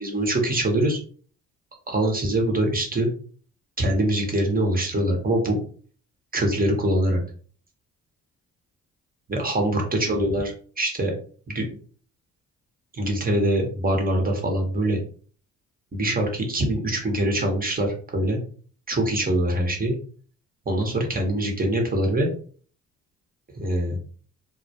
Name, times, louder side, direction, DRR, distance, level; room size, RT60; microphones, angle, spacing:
voice 1, 0.0-1.0 1.9-3.1 3.8-5.6 6.3-7.2 9.3-11.1 11.5-11.6 12.9-15.0 15.9-18.4 18.9-19.9 20.7-22.3 23.6-24.0, right 1 dB, 25° right, 1 dB, 0.8 m, -23 dB
2.1 x 2.1 x 2.7 m, 0.43 s
supercardioid pair, 70°, 32 cm